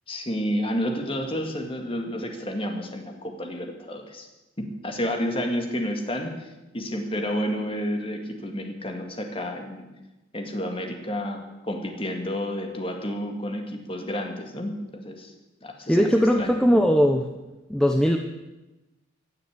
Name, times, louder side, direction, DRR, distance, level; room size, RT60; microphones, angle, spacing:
voice 1, 0.1-4.3 4.6-6.5 6.7-9.9 10.3-15.3 15.6-16.6, equal, 25° left, 3 dB, 2.0 m, -30 dB
voice 2, 15.9-17.3 17.7-18.2, equal, 5° left, 3 dB, 0.7 m, -19 dB
16.0 x 7.1 x 9.9 m, 1.1 s
head